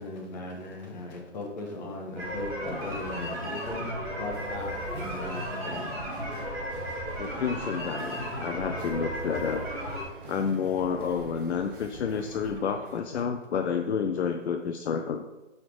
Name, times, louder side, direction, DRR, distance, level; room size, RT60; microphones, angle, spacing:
voice 1, 0.0-5.9 6.6-6.7 7.2-7.4, left 2 dB, 35° left, 0 dB, 1.5 m, -38 dB
sound 1, 2.1-10.0, equal, 10° right, 1.2 m, -34 dB
sound 2, 4.3-13.0, right 4 dB, 45° right, 0.8 m, -46 dB
voice 2, 7.2-9.6 10.3-15.3, left 6 dB, 65° left, 6 dB, 0.5 m, -30 dB
4.7 x 4.3 x 4.7 m, 1.1 s
hypercardioid pair, 155°, 37 cm